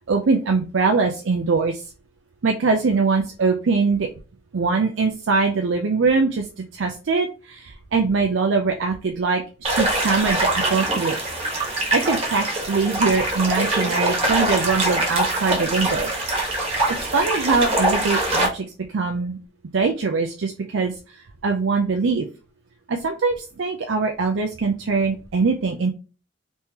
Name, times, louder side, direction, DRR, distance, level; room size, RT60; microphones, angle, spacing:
voice 1, 0.1-1.8 2.4-4.1 4.5-11.2 11.6-16.1 16.6-16.7 17.1-18.7 18.9-19.4 19.7-20.9 21.4-22.3 22.9-25.9, right 4 dB, 80° right, 3 dB, 0.5 m, -22 dB
sound 1, 9.6-18.5, right 1 dB, 30° right, 1.2 m, -23 dB
3.6 x 3.1 x 2.8 m, 0.33 s
head